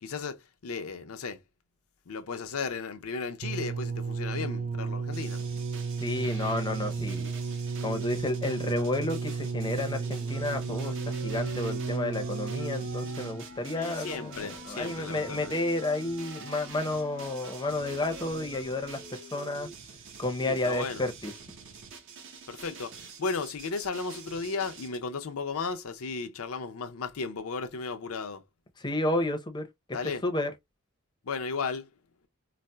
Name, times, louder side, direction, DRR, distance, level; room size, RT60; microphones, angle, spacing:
voice 1, 0.0-1.4 2.1-5.4 13.7-15.7 20.4-21.0 22.5-28.4 29.9-30.2 31.2-31.9, left 4 dB, 70° left, 0.6 m, -35 dB
sound 1, 3.4-13.5 14.3-14.4, right 4 dB, 40° right, 0.3 m, -33 dB
sound 2, 5.1-25.0, right 5 dB, 60° right, 0.8 m, -47 dB
voice 2, 6.0-7.3 7.8-19.7 20.2-21.3 28.8-29.7 30.2-30.5, left 2 dB, 20° left, 0.6 m, -31 dB
sound 3, 9.7-19.7, left 1 dB, 85° right, 2.0 m, -47 dB
4.0 x 2.0 x 2.2 m
head